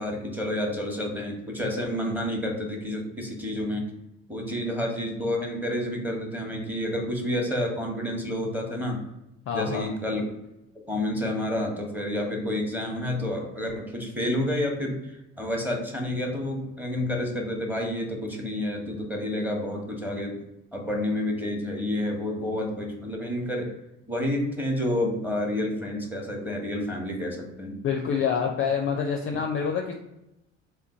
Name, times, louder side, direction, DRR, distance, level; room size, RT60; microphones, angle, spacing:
voice 1, 0.0-3.9 4.3-9.0 9.5-10.3 10.9-15.0 15.4-20.4 20.7-23.8 24.1-27.8, left 1 dB, 5° right, 0 dB, 1.0 m, -29 dB
voice 2, 9.5-9.9 27.8-30.0, left 6 dB, 35° left, 2 dB, 0.5 m, -27 dB
3.7 x 2.3 x 3.7 m, 0.90 s
figure-of-eight pair, 55°, 41 cm